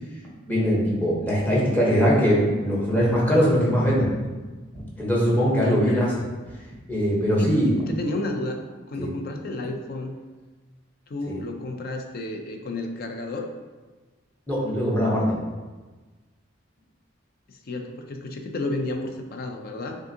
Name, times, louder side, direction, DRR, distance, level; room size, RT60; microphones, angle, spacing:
voice 1, 0.5-4.1 4.7-6.1 6.9-7.7 9.0-9.1 11.3-11.4 14.5-15.4, equal, 10° left, -5 dB, 1.0 m, -21 dB
voice 2, 5.6-6.2 7.4-7.5 7.8-8.6 8.9-10.2 11.1-13.5 17.5-20.0, left 2 dB, 50° left, 4 dB, 0.5 m, -31 dB
6.2 x 2.5 x 2.7 m, 1.3 s
head